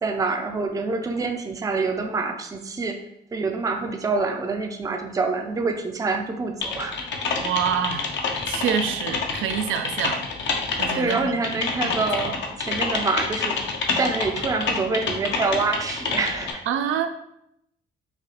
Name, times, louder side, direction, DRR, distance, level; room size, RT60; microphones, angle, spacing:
voice 1, 0.0-3.0 3.3-7.0 10.9-13.6 14.0-16.6, right 3 dB, 15° right, 4 dB, 0.4 m, -26 dB
Typing, 6.6-16.5, left 4 dB, 65° left, 0.7 m, -27 dB
voice 2, 7.4-8.1 8.5-11.9 12.2-12.3 16.7-17.1, right 8 dB, 80° right, 9 dB, 0.4 m, -27 dB
4.8 x 2.3 x 3.0 m, 0.77 s
cardioid pair, 90°, 20 cm